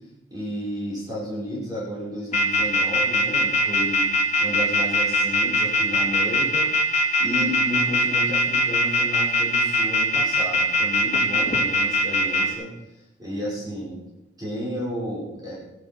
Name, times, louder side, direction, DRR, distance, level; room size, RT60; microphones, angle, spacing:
voice 1, 0.3-4.1 4.4-12.7 13.2-14.1 14.4-15.6, equal, 20° right, -6 dB, 5.0 m, -32 dB
sound 1, 2.3-12.4, left 1 dB, 35° left, 2.5 m, -21 dB
16.0 x 11.0 x 5.8 m, 0.97 s
head